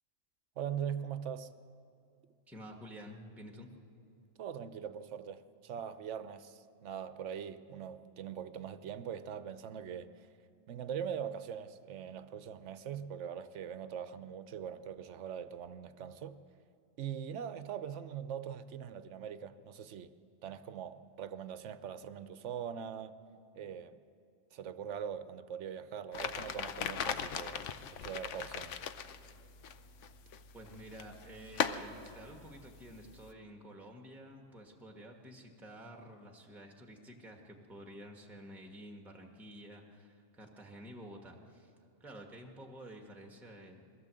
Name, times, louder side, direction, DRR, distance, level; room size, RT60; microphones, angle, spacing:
voice 1, 0.6-1.5 4.4-10.3 10.7-16.4 17.0-20.1 20.4-23.2 23.5-24.0 24.5-27.6 28.0-28.8, right 8 dB, 65° right, 12 dB, 1.0 m, -42 dB
voice 2, 2.5-3.7 30.5-41.7 42.0-43.9, equal, ahead, 2 dB, 1.4 m, -51 dB
sound 1, 26.1-33.3, left 7 dB, 65° left, 1.0 m, -40 dB
22.0 x 16.0 x 7.6 m, 2.5 s
omnidirectional pair, 1.4 m